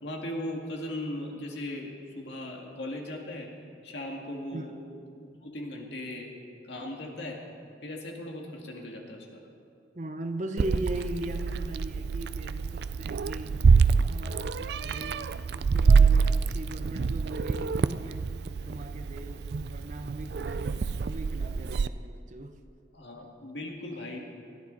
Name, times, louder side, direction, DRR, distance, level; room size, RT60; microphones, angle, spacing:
voice 1, 0.0-3.5 3.8-4.7 5.1-6.3 6.6-7.4 7.8-9.4 22.9-24.2, left 1 dB, 70° left, 0 dB, 2.1 m, -38 dB
voice 2, 9.9-13.6 13.9-22.6, right 1 dB, 40° right, 6 dB, 0.9 m, -39 dB
Meow, 10.6-21.9, right 5 dB, 60° right, 0.4 m, -26 dB
20.0 x 13.5 x 4.1 m, 2.4 s
head